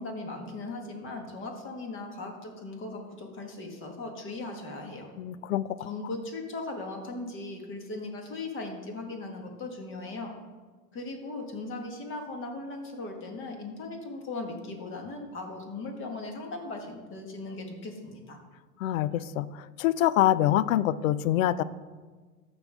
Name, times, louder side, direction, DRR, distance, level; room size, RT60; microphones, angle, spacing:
voice 1, 0.0-5.1 5.8-10.3 10.9-18.4, left 2 dB, 25° left, 3 dB, 1.7 m, -38 dB
voice 2, 5.2-5.7 18.8-21.6, left 13 dB, 60° left, 18 dB, 0.5 m, -25 dB
13.5 x 5.4 x 3.6 m, 1.4 s
hypercardioid pair, 110°, 47 cm